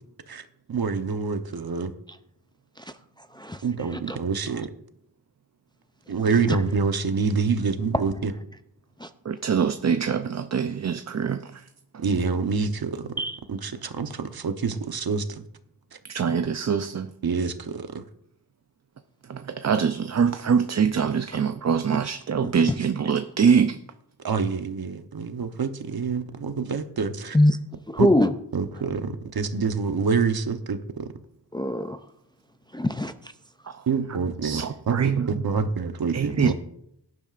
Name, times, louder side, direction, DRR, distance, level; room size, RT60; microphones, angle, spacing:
voice 1, 0.7-1.9 3.6-4.7 6.1-8.3 12.0-13.1 13.5-15.4 17.2-18.0 24.2-27.4 28.0-28.1 28.5-31.1 33.9-36.5, right 5 dB, 60° right, 8 dB, 1.0 m, -26 dB
voice 2, 9.3-11.6 16.1-17.1 19.3-23.8 34.4-35.4 36.1-36.5, right 6 dB, 40° right, 9 dB, 0.5 m, -24 dB
voice 3, 27.9-28.3 31.5-32.0 32.7-33.1 36.4-36.5, left 1 dB, 10° left, 9 dB, 0.4 m, -22 dB
17.5 x 11.0 x 2.5 m, 0.74 s
wide cardioid pair, 115°, 41 cm